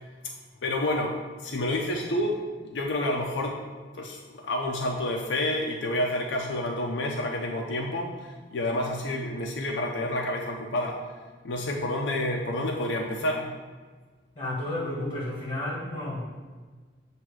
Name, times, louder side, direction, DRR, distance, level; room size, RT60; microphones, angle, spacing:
voice 1, 0.6-3.6 3.9-11.0 11.4-13.5, left 1 dB, 75° left, 0 dB, 0.6 m, -29 dB
voice 2, 14.3-16.3, left 1 dB, 30° left, -5 dB, 1.6 m, -32 dB
7.6 x 2.7 x 4.7 m, 1.4 s
head